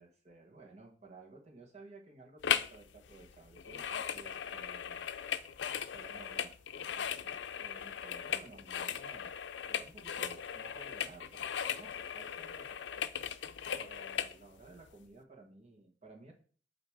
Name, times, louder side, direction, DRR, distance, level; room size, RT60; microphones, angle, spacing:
voice 1, 0.0-6.5 6.9-16.3, right 3 dB, 40° right, 1 dB, 1.3 m, -56 dB
sound 1, 2.4-2.8 3.0-14.3 14.9-15.0, left 8 dB, 80° left, 0.5 m, -38 dB
8.7 x 2.9 x 4.8 m, 0.42 s
head